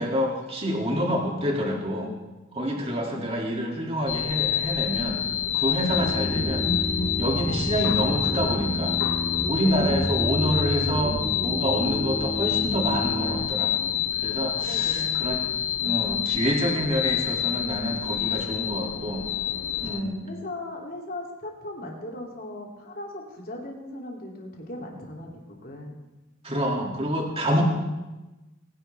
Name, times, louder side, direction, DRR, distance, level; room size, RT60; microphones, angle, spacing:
voice 1, 0.0-2.1 2.5-5.2 5.5-6.7 7.2-9.0 9.5-15.5 15.8-19.3 19.8-20.2 26.4-27.6, equal, 30° right, -1 dB, 2.3 m, -27 dB
sound 1, 4.1-20.0, left 10 dB, 85° left, 0.8 m, -28 dB
sound 2, 5.9-13.4, equal, 10° right, 2.8 m, -31 dB
voice 2, 9.6-10.0 14.6-15.3 19.8-26.0, left 1 dB, 50° left, -1 dB, 2.7 m, -38 dB
21.5 x 10.5 x 3.4 m, 1.1 s
head